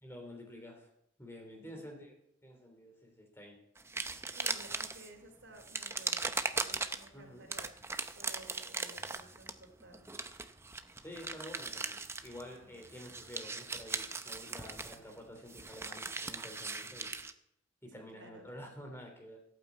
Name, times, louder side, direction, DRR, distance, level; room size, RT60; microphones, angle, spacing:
voice 1, 0.0-0.9 1.2-2.1 2.4-3.6 7.1-7.5 11.0-17.1 17.8-19.4, equal, 15° left, 2 dB, 3.4 m, -49 dB
voice 2, 1.5-1.9 4.3-7.7 8.2-10.1 12.6-12.7 17.9-18.5, right 1 dB, 75° right, 4 dB, 3.0 m, -55 dB
sound 1, 3.8-5.1 5.6-7.1 7.5-12.6 12.8-17.3, right 3 dB, 15° right, 0.7 m, -39 dB
14.5 x 9.0 x 8.4 m, 0.77 s
head